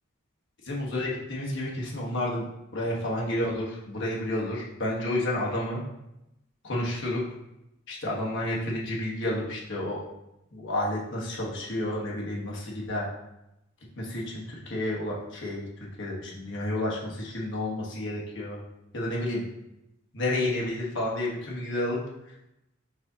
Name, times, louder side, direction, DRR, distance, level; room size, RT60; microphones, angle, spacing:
voice 1, 0.6-2.5 2.7-5.8 6.6-7.2 7.9-10.0 10.5-13.1 14.0-15.7 16.0-18.6 18.9-19.4 20.1-22.0, left 1 dB, 60° left, -4 dB, 1.1 m, -30 dB
4.7 x 2.8 x 3.9 m, 0.87 s
head